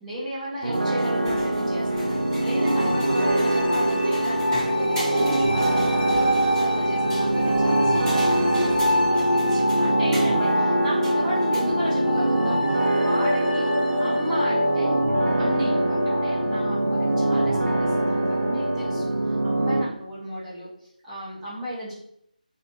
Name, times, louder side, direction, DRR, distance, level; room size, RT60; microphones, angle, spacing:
voice 1, 0.0-13.7 14.0-14.9 15.4-21.9, equal, 5° right, -15 dB, 0.4 m, -34 dB
sound 1, 0.6-12.2, equal, 20° right, 1.0 m, -40 dB
sound 2, 0.6-19.8, right 2 dB, 75° right, 0.4 m, -25 dB
sound 3, 1.0-19.0, left 1 dB, 75° left, 0.7 m, -26 dB
2.6 x 2.1 x 2.7 m, 0.72 s
figure-of-eight pair, 160°, 5 cm